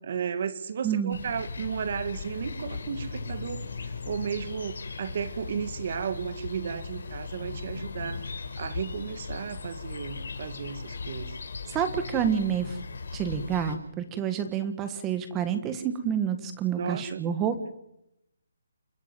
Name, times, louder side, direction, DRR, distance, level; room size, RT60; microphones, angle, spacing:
voice 1, 0.0-11.4 16.7-17.3, right 7 dB, 40° right, 12 dB, 2.0 m, -34 dB
voice 2, 0.8-1.2 11.7-12.7 13.1-17.6, right 8 dB, 10° right, 9 dB, 1.6 m, -28 dB
sound 1, 1.1-13.8, left 4 dB, 70° left, 4.9 m, -38 dB
29.5 x 10.0 x 9.0 m, 0.80 s
hypercardioid pair, 170°, 0 cm